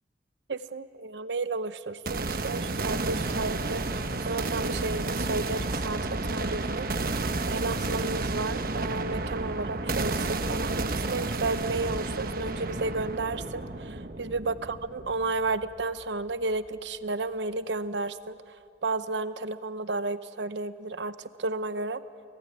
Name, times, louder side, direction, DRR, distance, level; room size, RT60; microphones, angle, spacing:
voice 1, 0.5-6.9 7.5-18.4 18.8-22.0, right 3 dB, 75° right, 13 dB, 0.8 m, -32 dB
sound 1, 2.1-16.0, right 2 dB, 55° right, 1.2 m, -31 dB
29.0 x 18.5 x 9.6 m, 2.7 s
head